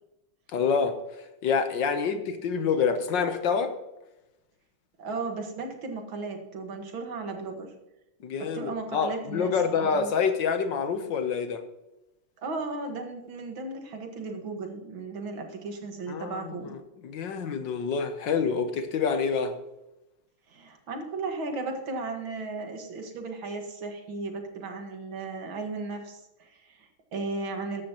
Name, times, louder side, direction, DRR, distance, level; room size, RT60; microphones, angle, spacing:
voice 1, 0.5-1.0 1.4-3.7 8.2-11.6 16.1-16.8 17.0-19.5, left 6 dB, 65° left, 8 dB, 1.6 m, -27 dB
voice 2, 5.0-7.7 8.4-10.1 12.4-16.7 20.5-27.8, right 3 dB, 70° right, 4 dB, 2.5 m, -35 dB
14.0 x 11.5 x 3.0 m, 0.93 s
omnidirectional pair, 2.3 m